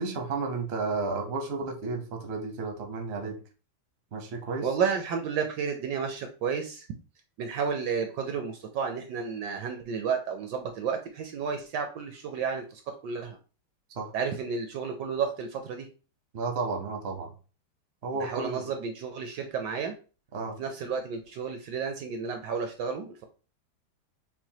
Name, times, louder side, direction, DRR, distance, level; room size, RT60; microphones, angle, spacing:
voice 1, 0.0-3.4 4.1-4.7 13.9-14.1 16.3-17.3 18.0-18.7 20.3-20.6, right 3 dB, 55° right, 3 dB, 0.7 m, -32 dB
voice 2, 4.6-6.9 7.4-13.4 14.1-15.9 18.2-20.0 20.6-23.2, right 6 dB, 75° right, 5 dB, 1.0 m, -32 dB
6.1 x 2.1 x 2.8 m, 0.36 s
omnidirectional pair, 2.2 m